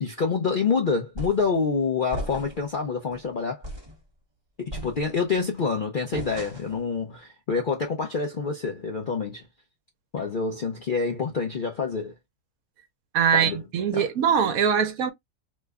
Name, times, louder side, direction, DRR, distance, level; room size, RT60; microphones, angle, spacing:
voice 1, 0.0-3.6 4.6-9.5 10.1-12.1 13.3-13.6 13.9-14.1, left 5 dB, 55° left, 0.5 m, -27 dB
sound 1, 1.2-1.5 2.1-2.7 3.1-3.2 3.6-4.0 4.7-5.4 6.1-6.8, equal, 20° right, 0.8 m, -36 dB
voice 2, 13.1-15.1, right 7 dB, 70° right, 1.1 m, -22 dB
3.1 x 2.1 x 3.4 m
omnidirectional pair, 1.6 m